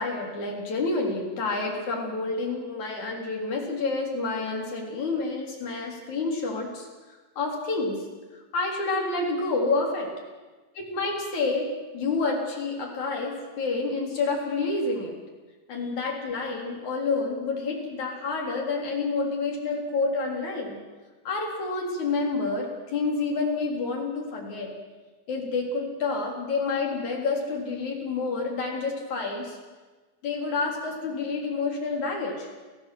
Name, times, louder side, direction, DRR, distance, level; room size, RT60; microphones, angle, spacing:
voice 1, 0.0-6.9 7.4-8.0 8.5-10.1 10.8-11.7 11.9-15.1 15.7-20.8 21.2-24.7 25.3-29.6 30.2-32.5, left 3 dB, 50° left, 0 dB, 4.9 m, -28 dB
29.0 x 15.0 x 7.8 m, 1.3 s
omnidirectional pair, 4.6 m